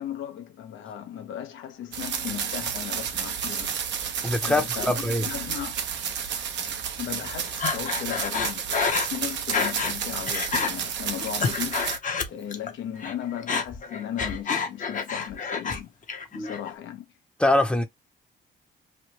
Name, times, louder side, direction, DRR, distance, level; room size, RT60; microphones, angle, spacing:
voice 1, 0.0-3.7 4.4-5.8 6.6-11.9 12.3-15.9 16.3-17.1, left 10 dB, 80° left, 0.8 m, -36 dB
sound 1, 1.9-12.0, right 7 dB, 65° right, 0.7 m, -31 dB
voice 2, 4.2-5.3 16.3-16.5 17.4-17.8, left 1 dB, 5° left, 0.7 m, -23 dB
Breathing, 7.6-10.0 10.3-10.7 11.2-12.7 13.0-15.8 16.1-16.7, left 5 dB, 40° left, 0.8 m, -28 dB
3.1 x 2.1 x 3.0 m
cardioid pair, 90°, 20 cm